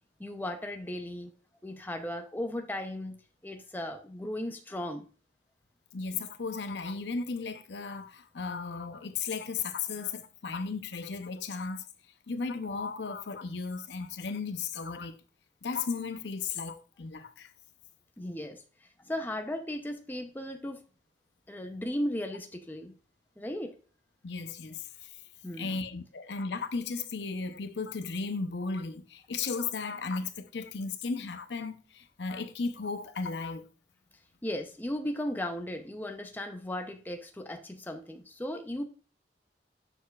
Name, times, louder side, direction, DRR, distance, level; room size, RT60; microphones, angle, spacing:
voice 1, 0.2-1.3 1.6-3.2 3.4-5.0 18.2-18.6 19.1-20.8 21.5-22.9 23.4-23.7 25.4-25.8 34.4-38.8, left 1 dB, 10° left, 0.6 m, -36 dB
voice 2, 5.9-11.8 12.3-15.2 15.6-17.5 24.2-25.2 25.6-33.7, left 4 dB, 75° left, 0.7 m, -35 dB
6.9 x 6.6 x 2.4 m
head